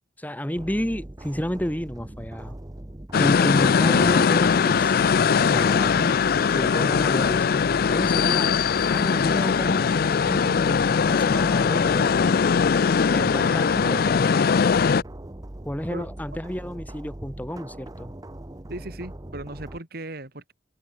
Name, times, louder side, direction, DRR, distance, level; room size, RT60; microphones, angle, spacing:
voice 1, 0.2-2.6 3.2-5.0 5.5-6.1 6.5-8.5 8.9-12.2 13.1-14.3 15.6-18.1, equal, 10° left, 2.2 m, -31 dB
sound 1, 0.6-19.8, right 1 dB, 20° right, 0.8 m, -40 dB
sound 2, 3.1-15.0, left 6 dB, 55° left, 0.4 m, -20 dB
voice 2, 13.2-13.9 15.9-16.1 18.7-20.5, right 2 dB, 60° right, 3.1 m, -37 dB
head